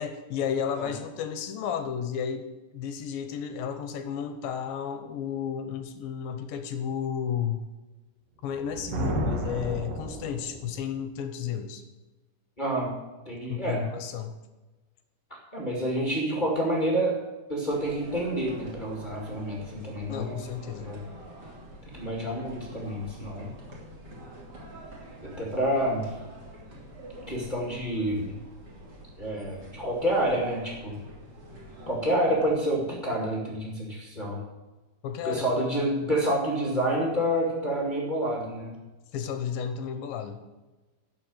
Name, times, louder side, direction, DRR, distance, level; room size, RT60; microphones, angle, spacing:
voice 1, 0.0-2.5 2.7-7.7 8.4-11.8 13.5-14.4 20.1-20.9 35.0-35.7 39.1-40.4, left 8 dB, 75° left, 8 dB, 2.3 m, -32 dB
Thunder, 8.5-10.8, equal, 70° right, 1.6 m, -32 dB
voice 2, 12.6-12.9 13.2-13.9 15.5-17.2 17.5-20.4 20.8-21.0 21.9-23.5 25.2-26.1 27.3-28.3 29.2-31.0 31.9-34.4 35.2-38.7, right 1 dB, 25° left, -2 dB, 1.0 m, -28 dB
sound 1, 17.7-32.9, right 1 dB, 30° right, 2.7 m, -46 dB
12.0 x 6.8 x 8.1 m, 1.1 s
omnidirectional pair, 4.8 m